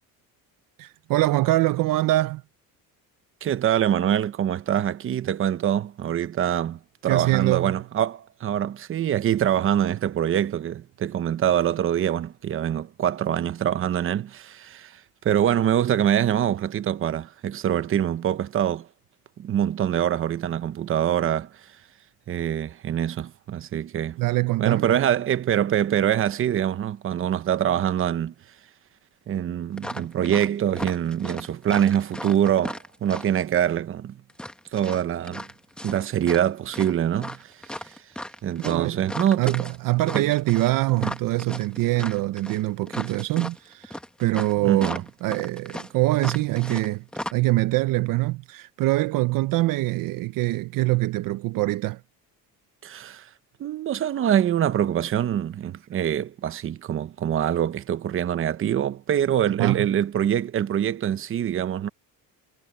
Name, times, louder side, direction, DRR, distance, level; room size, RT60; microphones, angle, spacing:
voice 1, 0.8-2.4 7.1-7.7 24.2-25.0 38.6-39.0 39.4-47.0 47.3-52.0 59.5-59.9, right 18 dB, 60° right, 0.7 m, -24 dB
voice 2, 3.4-18.9 19.4-21.7 22.3-24.2 24.6-28.3 29.3-34.2 34.7-35.4 35.8-38.0 38.4-39.6 40.1-40.3 44.6-45.0 52.8-53.3 53.6-61.9, right 10 dB, 35° right, 0.9 m, -24 dB
sound 1, 29.8-30.5 30.7-33.4 34.3-36.5 36.7-46.9 47.1-47.3, left 1 dB, ahead, 1.4 m, -36 dB
cardioid pair, 150°, 38 cm